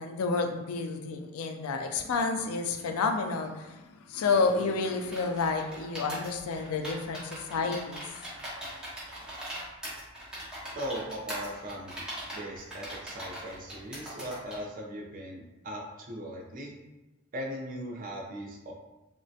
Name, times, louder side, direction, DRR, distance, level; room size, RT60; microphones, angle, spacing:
voice 1, 0.0-3.8 4.1-8.0, left 4 dB, 90° left, 5 dB, 0.4 m, -30 dB
sound 1, 5.0-14.6, equal, 5° right, 0.7 m, -40 dB
voice 2, 10.7-12.0 12.3-16.7 17.3-18.7, equal, 40° right, 0 dB, 0.5 m, -39 dB
3.1 x 2.1 x 2.7 m, 1.0 s
head